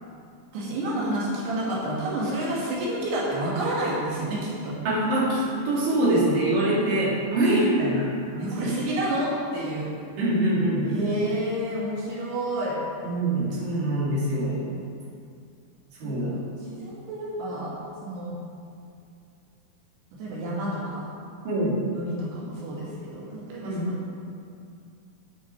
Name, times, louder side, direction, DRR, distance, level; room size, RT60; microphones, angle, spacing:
voice 1, 0.5-4.4 4.6-4.8 8.4-9.9 10.9-12.8 16.0-16.3 16.7-18.4 20.2-21.1 21.9-23.9, right 1 dB, 85° right, -5 dB, 4.1 m, -29 dB
voice 2, 4.8-8.1 8.3-8.9 10.2-11.0 13.0-14.6 16.0-16.4 21.4-21.8 23.6-23.9, right 1 dB, 60° right, -7 dB, 4.2 m, -24 dB
12.0 x 9.4 x 4.6 m, 2.3 s
omnidirectional pair, 4.6 m